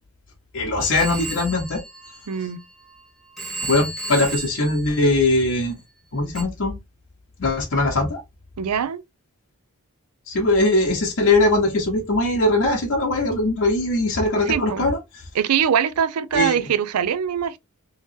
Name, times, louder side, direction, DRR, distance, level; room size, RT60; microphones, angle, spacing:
voice 1, 0.5-1.8 3.6-5.7 6.1-6.8 7.4-8.2 10.3-15.0 16.3-16.6, left 2 dB, 60° left, 0.9 m, -20 dB
Telephone, 0.8-2.9 3.4-5.7 6.3-6.4, right 3 dB, ahead, 1.1 m, -34 dB
voice 2, 2.3-2.6 8.6-9.0 14.4-14.9 15.3-17.6, right 8 dB, 85° right, 0.4 m, -22 dB
3.2 x 2.8 x 3.1 m
head